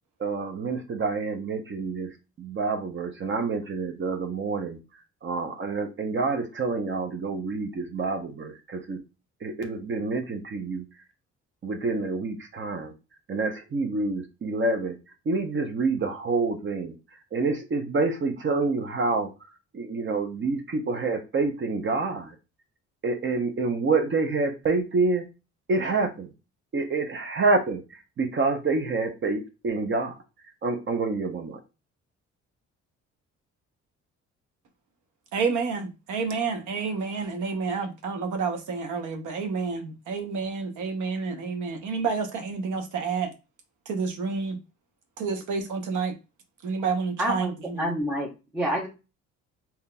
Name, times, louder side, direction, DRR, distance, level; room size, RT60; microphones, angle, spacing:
voice 1, 0.2-2.1 2.4-4.8 5.2-9.0 9.4-10.8 11.6-12.9 13.3-15.0 15.3-16.9 17.3-19.3 19.7-22.3 23.0-25.2 25.7-26.3 26.7-30.2 30.6-31.6, right 3 dB, 40° right, 0.7 m, -27 dB
voice 2, 35.3-43.3 43.9-44.6 45.2-46.1 46.6-47.9, right 5 dB, 80° right, 0.8 m, -29 dB
voice 3, 47.2-47.5 47.8-48.9, equal, 5° right, 0.8 m, -28 dB
3.8 x 2.8 x 2.2 m
cardioid pair, 90°, 30 cm